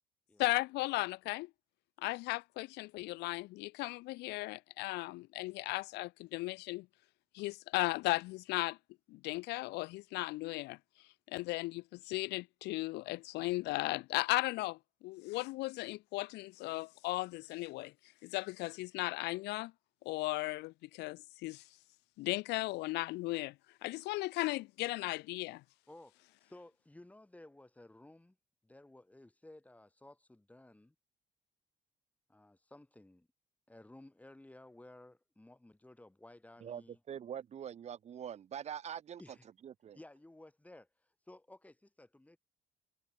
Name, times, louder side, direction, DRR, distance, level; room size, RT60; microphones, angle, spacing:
voice 1, 0.4-1.5 2.0-6.9 7.3-8.8 9.1-10.8 11.3-17.9 18.2-19.7 20.0-21.6 22.2-23.6 23.8-25.6, left 21 dB, 85° left, 0.7 m, -36 dB
voice 2, 25.9-28.4 28.6-30.9 32.3-33.3 33.7-37.0 39.2-39.5 39.9-40.9 41.3-42.4, left 1 dB, 10° left, 7.6 m, -56 dB
voice 3, 36.6-39.2 39.6-40.0, right 9 dB, 40° right, 0.8 m, -44 dB
cardioid pair, 110°, 17 cm